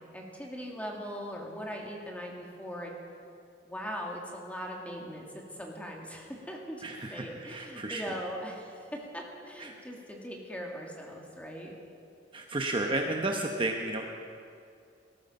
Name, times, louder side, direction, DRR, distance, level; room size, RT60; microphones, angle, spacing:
voice 1, 0.1-2.9 3.6-6.8 7.1-11.7, equal, 10° left, 0 dB, 2.1 m, -40 dB
voice 2, 6.8-8.1 9.6-9.7 12.3-14.1, right 2 dB, 30° right, 2 dB, 0.9 m, -32 dB
18.5 x 13.5 x 5.4 m, 2.4 s
head